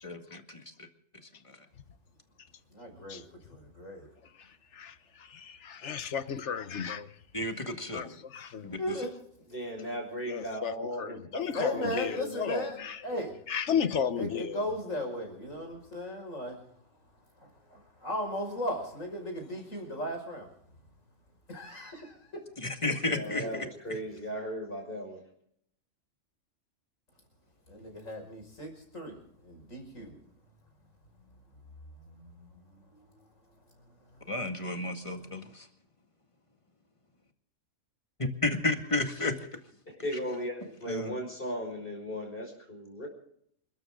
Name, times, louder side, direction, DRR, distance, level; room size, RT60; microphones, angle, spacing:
voice 1, 0.0-0.6 7.3-8.1 8.6-9.0 22.6-23.4 34.3-35.7 38.4-39.3 40.9-41.1, left 2 dB, 25° left, 2.0 m, -32 dB
voice 2, 2.7-3.2 3.5-4.1 8.8-9.1 11.5-12.8 13.0-13.3 14.2-16.6 17.7-20.5 21.5-22.1 27.7-29.2 29.4-30.2 32.1-32.3, equal, 85° left, 6.1 m, -36 dB
voice 3, 5.3-7.1 7.9-8.1 8.3-8.7 10.3-10.7 11.0-13.0 13.5-14.6, left 7 dB, 65° left, 1.3 m, -33 dB
voice 4, 9.5-13.2 23.0-25.2 40.0-43.1, equal, 45° left, 5.6 m, -37 dB
28.5 x 13.5 x 3.8 m
omnidirectional pair, 1.3 m